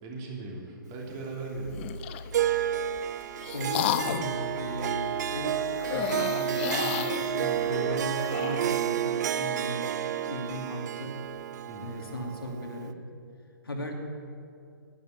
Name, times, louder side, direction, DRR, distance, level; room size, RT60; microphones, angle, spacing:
voice 1, 0.0-2.1 11.7-12.0, right 3 dB, 30° right, -2 dB, 3.0 m, -38 dB
sound 1, 1.6-7.8, equal, 70° left, 1.8 m, -45 dB
sound 2, 1.7-2.3 3.0-4.4 5.8-8.8, left 12 dB, 30° left, 0.6 m, -33 dB
Harp, 2.3-12.9, right 10 dB, 50° right, 0.5 m, -30 dB
voice 2, 3.5-11.2 11.8-13.0 13.6-13.9, equal, 85° left, 1 dB, 2.7 m, -37 dB
11.0 x 11.0 x 8.4 m, 2.6 s
figure-of-eight pair, 130°, 12 cm